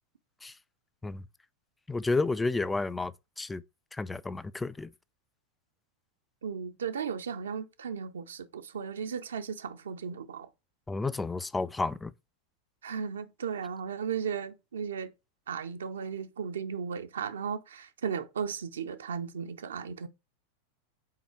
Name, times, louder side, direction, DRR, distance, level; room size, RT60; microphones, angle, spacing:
voice 1, 1.9-3.1 3.4-3.6 3.9-4.9 10.9-12.1, left 3 dB, 10° left, 0.3 m, -31 dB
voice 2, 6.4-10.5 12.8-15.1 15.5-20.1, right 6 dB, 65° right, 0.5 m, -35 dB
5.7 x 4.2 x 4.5 m
figure-of-eight pair, 90°, 0 cm